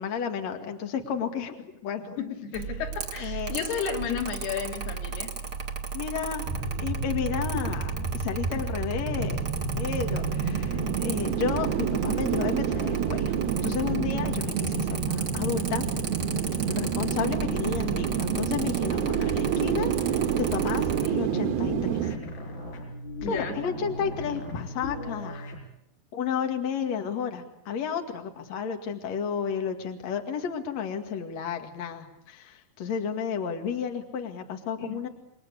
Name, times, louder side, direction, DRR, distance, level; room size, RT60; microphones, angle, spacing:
voice 1, 0.0-2.2 3.2-3.6 4.1-4.2 5.9-6.5 6.8-9.4 9.8-13.3 13.6-15.9 16.7-22.1 23.3-25.4 26.1-35.1, left 7 dB, 50° left, 4 dB, 3.2 m, -32 dB
voice 2, 2.2-5.3 7.5-7.7 8.2-8.4 23.2-23.6 34.8-35.0, left 7 dB, 85° left, 3 dB, 4.8 m, -33 dB
Mechanical fan, 2.5-21.1, right 6 dB, 40° right, 1.8 m, -35 dB
sound 1, 6.5-22.2, right 7 dB, 75° right, 3.2 m, -29 dB
sound 2, 19.9-25.7, left 1 dB, 70° left, 7.2 m, -38 dB
29.0 x 22.0 x 8.4 m, 0.79 s
omnidirectional pair, 4.5 m